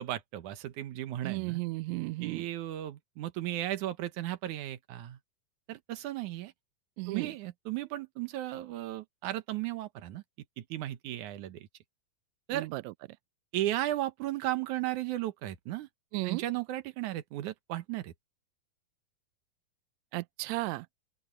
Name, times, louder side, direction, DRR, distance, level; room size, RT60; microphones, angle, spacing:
voice 1, 0.0-1.6 2.2-5.2 5.7-6.5 7.1-10.2 10.6-11.7 12.5-12.7 13.5-15.9 16.2-18.1, right 14 dB, 70° right, 2.3 m, -35 dB
voice 2, 1.2-2.5 7.0-7.3 12.5-12.9 16.1-16.4 20.1-20.9, right 21 dB, 85° right, 1.6 m, -34 dB
open air
omnidirectional pair, 3.9 m